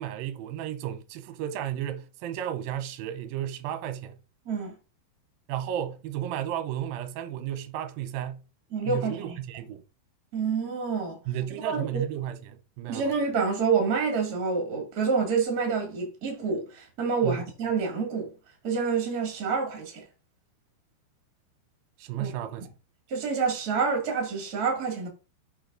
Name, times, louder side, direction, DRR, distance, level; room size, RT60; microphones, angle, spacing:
voice 1, 0.0-4.2 5.5-8.4 8.9-9.8 11.3-13.1 17.2-17.5 22.0-22.7, right 11 dB, 75° right, 2.4 m, -33 dB
voice 2, 8.7-9.4 10.3-11.2 11.6-12.0 12.9-18.3 18.6-20.0 22.2-22.4 23.1-25.1, right 5 dB, 35° right, 1.7 m, -27 dB
5.9 x 5.7 x 3.8 m
omnidirectional pair, 4.7 m